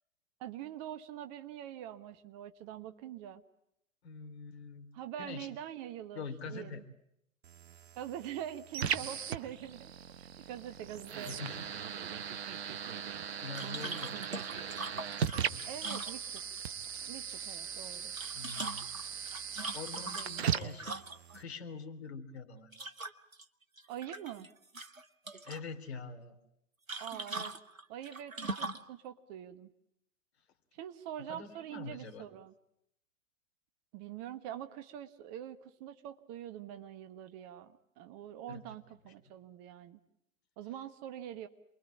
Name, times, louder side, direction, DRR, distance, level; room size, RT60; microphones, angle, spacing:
voice 1, 0.4-3.4 4.9-6.8 8.0-9.9 10.2-11.4 15.6-16.4 17.0-18.1 20.6-20.8 23.9-24.5 27.0-27.5 27.9-29.7 30.7-32.5 33.9-40.0 40.6-41.5, right 11 dB, 30° right, 10 dB, 1.2 m, -44 dB
voice 2, 4.0-4.9 5.2-5.5 6.1-6.8 11.2-11.6 12.1-12.4 13.4-14.2 18.3-19.0 19.7-21.0 21.3-22.7 25.4-26.3 31.3-32.2 38.5-38.6 39.0-39.1, left 4 dB, 50° left, 8 dB, 3.1 m, -44 dB
sound 1, 7.4-21.4, right 8 dB, 50° right, 1.3 m, -39 dB
sound 2, 13.5-16.7 18.0-21.4 22.7-23.4 23.8-24.5 24.7-25.6 26.9-28.9, right 3 dB, 85° right, 1.4 m, -41 dB
28.5 x 22.5 x 8.6 m, 0.76 s
figure-of-eight pair, 110°, 39 cm